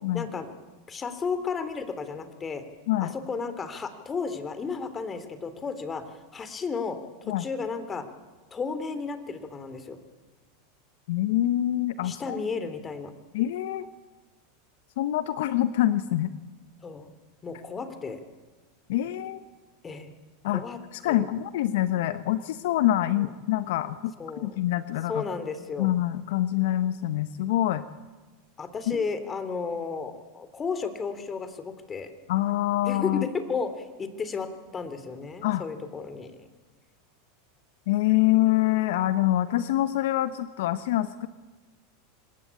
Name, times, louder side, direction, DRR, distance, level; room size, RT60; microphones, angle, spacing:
voice 1, 0.1-0.5 0.9-2.6 3.0-7.0 7.4-8.0 8.5-10.0 12.0-13.1 16.8-17.1 17.4-18.2 19.8-20.1 20.4-20.8 21.1-21.3 23.2-23.3 24.2-24.6 25.1-25.9 28.6-32.1 32.8-36.3, left 5 dB, 25° left, 11 dB, 3.4 m, -33 dB
voice 2, 11.1-12.4 13.3-13.9 15.0-16.3 18.9-19.4 20.4-20.6 20.9-24.1 24.4-25.2 25.8-27.8 28.9-29.0 32.3-33.3 35.4-35.7 37.9-41.3, left 14 dB, 70° left, 13 dB, 1.0 m, -25 dB
26.0 x 20.5 x 8.7 m, 1.3 s
hypercardioid pair, 100°, 0 cm